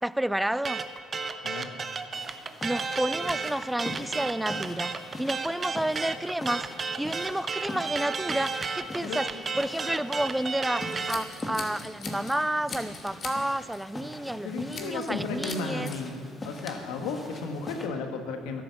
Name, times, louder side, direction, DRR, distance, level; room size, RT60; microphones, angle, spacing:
voice 1, 0.0-0.8 2.6-15.9, right 1 dB, 5° right, 0.3 m, -31 dB
sound 1, 0.6-11.2, right 5 dB, 35° right, 0.9 m, -32 dB
sound 2, 2.1-17.9, left 1 dB, 20° left, 1.7 m, -42 dB
Scissors, 10.8-12.4 12.7-13.4 13.7-13.9 14.7-15.2 15.5-16.0, left 5 dB, 50° left, 2.2 m, -40 dB
voice 2, 14.4-18.6, left 4 dB, 90° left, 1.5 m, -34 dB
13.0 x 10.5 x 7.1 m
supercardioid pair, 90°, 0 cm